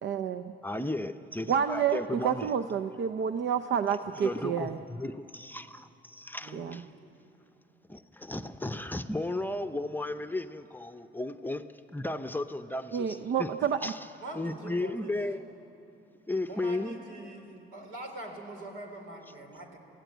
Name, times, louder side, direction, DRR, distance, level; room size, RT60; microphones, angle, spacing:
voice 1, 0.0-0.5 1.5-4.8 6.5-6.8 12.9-13.9, right 8 dB, 65° right, 9 dB, 0.7 m, -29 dB
voice 2, 0.6-2.5 4.2-6.9 7.9-11.6 11.9-13.5 13.8-14.0 14.3-15.4 16.3-17.0, left 2 dB, 10° left, 8 dB, 0.7 m, -34 dB
voice 3, 6.4-6.8 14.2-15.1 16.4-19.8, right 2 dB, 90° right, 2 dB, 3.5 m, -43 dB
23.0 x 15.5 x 9.2 m, 2.8 s
cardioid pair, 90°, 20 cm